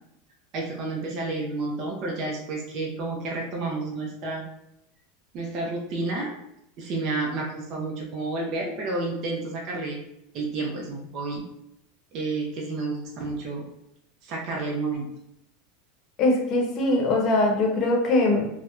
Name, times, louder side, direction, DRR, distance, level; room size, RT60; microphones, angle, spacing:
voice 1, 0.5-4.4 5.3-6.3 6.8-10.0 10.3-11.4 12.1-13.6 14.2-15.1, right 3 dB, 50° right, -1 dB, 0.6 m, -30 dB
voice 2, 16.2-18.5, left 2 dB, 45° left, 1 dB, 0.7 m, -22 dB
2.7 x 2.1 x 2.3 m, 0.80 s
hypercardioid pair, 105°, 0 cm